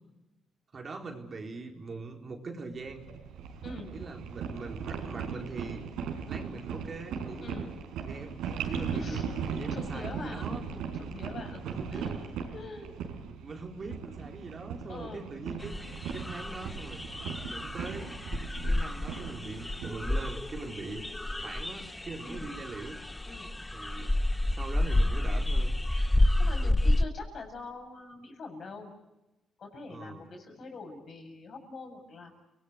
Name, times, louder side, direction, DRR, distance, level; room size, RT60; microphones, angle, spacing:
voice 1, 0.7-3.1 3.9-5.8 6.3-7.6 8.1-10.6 11.6-12.1 13.4-15.8 16.1-17.0 17.5-18.2 18.7-21.0 21.4-23.0 23.7-24.2 24.5-25.7 26.6-26.7 29.9-30.2, right 3 dB, 40° right, 3 dB, 4.1 m, -42 dB
sound 1, 2.9-20.7, right 6 dB, 90° right, 4.7 m, -38 dB
voice 2, 7.4-7.7 8.9-9.3 9.7-12.2 12.5-13.4 14.9-15.3 22.2-22.5 23.2-23.5 26.4-28.9 29.6-32.3, left 3 dB, 55° left, 4 dB, 7.5 m, -44 dB
sound 2, 15.6-27.0, left 1 dB, 15° left, 1.0 m, -30 dB
29.5 x 20.0 x 8.0 m, 0.99 s
cardioid pair, 90°, 0 cm